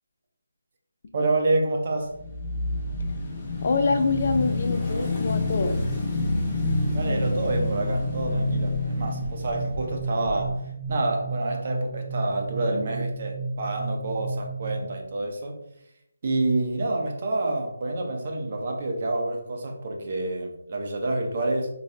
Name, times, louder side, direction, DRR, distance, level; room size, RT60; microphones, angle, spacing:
voice 1, 1.1-2.1 6.9-10.6 10.9-15.6 16.2-21.7, right 2 dB, 40° right, 2 dB, 0.7 m, -28 dB
Motorcycle / Engine, 2.0-10.5, left 2 dB, 15° left, 0.8 m, -29 dB
sound 1, 2.1-3.5 4.0-10.9, equal, 75° right, 1.4 m, -36 dB
voice 2, 3.6-5.8, left 4 dB, 45° left, 8 dB, 0.3 m, -25 dB
sound 2, 7.5-15.0, right 3 dB, 20° right, 1.0 m, -33 dB
4.1 x 2.3 x 3.4 m, 0.80 s
figure-of-eight pair, 165°, 0 cm